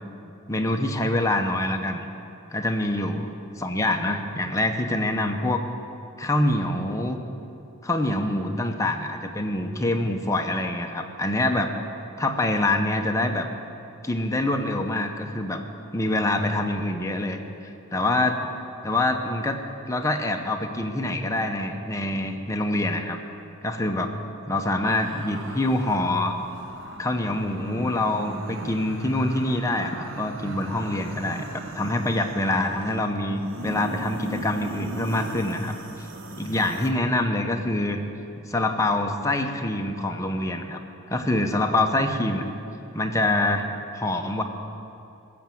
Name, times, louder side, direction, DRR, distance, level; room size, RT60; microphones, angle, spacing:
voice 1, 0.5-2.1 2.5-3.3 3.6-5.6 6.2-7.2 7.8-11.7 12.2-13.5 14.0-15.6 15.9-18.4 18.8-19.6 19.9-23.2 23.6-24.1 24.5-26.3 27.0-36.1 36.4-38.0 38.5-40.8 41.1-42.5 42.9-43.7 43.9-44.4, left 1 dB, 15° left, 4 dB, 0.8 m, -25 dB
sound 1, 24.8-36.9, right 1 dB, 60° right, 1.0 m, -38 dB
16.5 x 7.1 x 7.7 m, 2.7 s
head